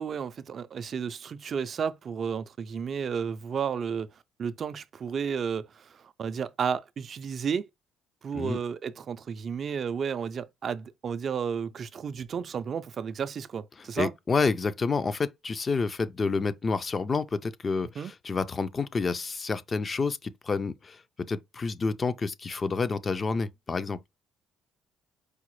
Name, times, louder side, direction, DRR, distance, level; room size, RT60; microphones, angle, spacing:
voice 1, 0.0-7.7 8.2-14.1 18.0-18.1, right 7 dB, 50° right, 0.3 m, -32 dB
voice 2, 14.0-21.0 21.3-24.0, left 4 dB, 35° left, 0.4 m, -29 dB
4.8 x 2.0 x 3.0 m
cardioid pair, 90°, 0 cm